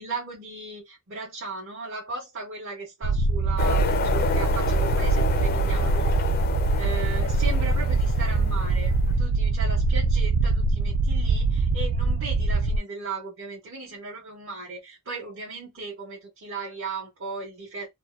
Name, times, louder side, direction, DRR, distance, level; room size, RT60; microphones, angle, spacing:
voice 1, 0.0-6.2 6.8-17.9, right 3 dB, 60° right, 0.9 m, -37 dB
sound 1, 3.0-12.8, right 3 dB, 75° right, 0.3 m, -23 dB
sound 2, 3.6-9.1, left 5 dB, 45° left, 0.4 m, -31 dB
2.7 x 2.1 x 2.3 m
head